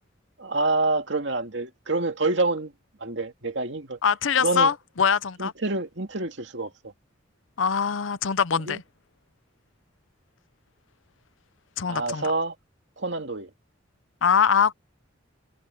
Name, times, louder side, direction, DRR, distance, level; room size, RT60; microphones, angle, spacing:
voice 1, 0.4-2.7 3.0-4.0 4.4-4.7 5.4-6.7 8.5-8.8 11.9-12.5 13.0-13.5, right 3 dB, 65° right, 2.4 m, -27 dB
voice 2, 4.0-5.5 7.6-8.8 11.8-12.3 14.2-14.7, left 6 dB, 80° left, 0.7 m, -23 dB
head